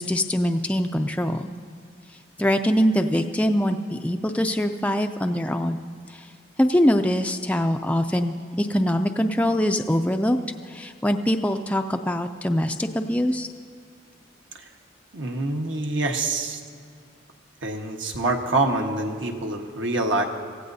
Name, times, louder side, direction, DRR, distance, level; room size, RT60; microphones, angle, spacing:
voice 1, 0.0-1.5 2.4-5.8 6.1-6.3 6.6-10.4 10.7-13.5, equal, 5° left, 5 dB, 0.4 m, -23 dB
voice 2, 15.1-16.6 17.6-20.2, right 2 dB, 75° right, 2 dB, 1.3 m, -26 dB
24.5 x 15.5 x 2.7 m, 2.1 s
head